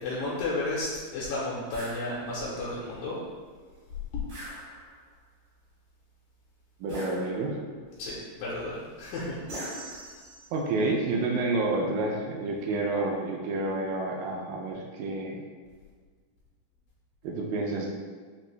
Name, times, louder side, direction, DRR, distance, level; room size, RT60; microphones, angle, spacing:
voice 1, 0.0-3.2 4.1-4.2 8.0-9.4, left 2 dB, 80° left, -7 dB, 2.2 m, -32 dB
sound 1, 1.7-2.0 4.3-5.1 6.9-7.7 9.5-10.6, right 1 dB, 65° right, 1.1 m, -40 dB
voice 2, 6.8-7.5 10.5-15.4 17.2-17.9, right 2 dB, 80° right, 0 dB, 2.0 m, -29 dB
5.9 x 2.5 x 3.1 m, 1.6 s
omnidirectional pair, 4.3 m